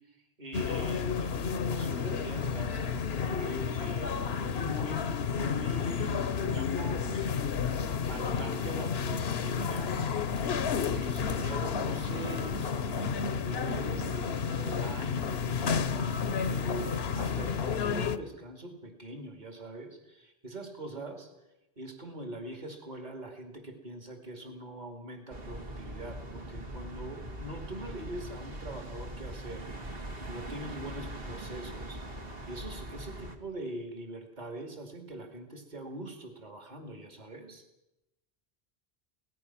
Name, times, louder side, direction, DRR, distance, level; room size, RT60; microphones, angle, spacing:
voice 1, 0.1-5.0 5.3-10.0 10.8-21.3 21.8-30.0 30.3-32.0 32.5-37.6, right 1 dB, 45° right, 4 dB, 2.5 m, -43 dB
sound 1, 0.5-18.2, left 6 dB, 70° left, 1.1 m, -31 dB
sound 2, 25.3-33.4, right 1 dB, 65° right, 2.4 m, -41 dB
24.5 x 18.0 x 6.0 m, 0.94 s
omnidirectional pair, 1.1 m